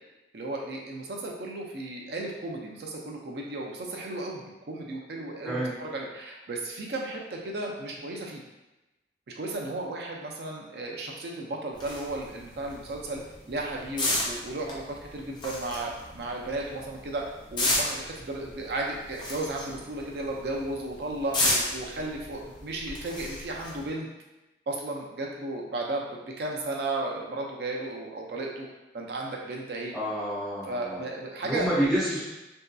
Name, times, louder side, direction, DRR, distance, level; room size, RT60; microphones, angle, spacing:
voice 1, 0.3-8.4 9.4-17.2 17.5-24.1 24.7-28.7 28.9-29.9 30.6-31.9, right 2 dB, 65° right, 0 dB, 0.4 m, -34 dB
sound 1, 11.7-23.9, left 1 dB, 25° left, 0.4 m, -33 dB
voice 2, 29.9-31.0 31.4-32.2, right 1 dB, ahead, -14 dB, 0.9 m, -28 dB
2.6 x 2.2 x 2.3 m, 1.0 s
head